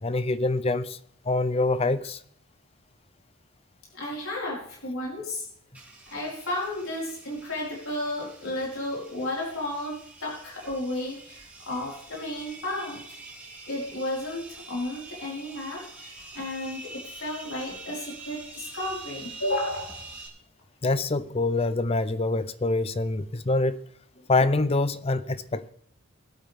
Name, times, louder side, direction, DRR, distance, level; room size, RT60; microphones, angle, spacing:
voice 1, 0.0-1.0 1.3-2.2 20.8-23.8 24.3-25.7, left 2 dB, 30° left, 0.5 m, -25 dB
voice 2, 3.9-5.5 6.1-13.0 13.7-20.0, left 1 dB, 70° left, 4.8 m, -33 dB
sound 1, 5.7-20.3, right 3 dB, 5° right, 3.2 m, -45 dB
21.0 x 8.5 x 3.6 m
head